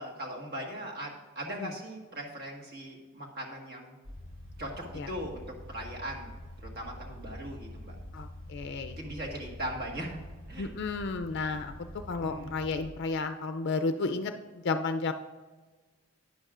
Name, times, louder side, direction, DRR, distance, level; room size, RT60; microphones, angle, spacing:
voice 1, 0.0-3.9 4.6-6.3 6.7-7.9 8.9-10.2 10.5-10.7 12.2-12.5, equal, 55° right, 0 dB, 1.7 m, -39 dB
sound 1, 4.0-12.9, left 1 dB, 80° right, 2.3 m, -46 dB
voice 2, 8.1-9.0 10.6-11.7 12.1-14.3 14.6-15.1, left 3 dB, 60° left, 7 dB, 0.4 m, -32 dB
12.0 x 9.4 x 2.5 m, 1.3 s
head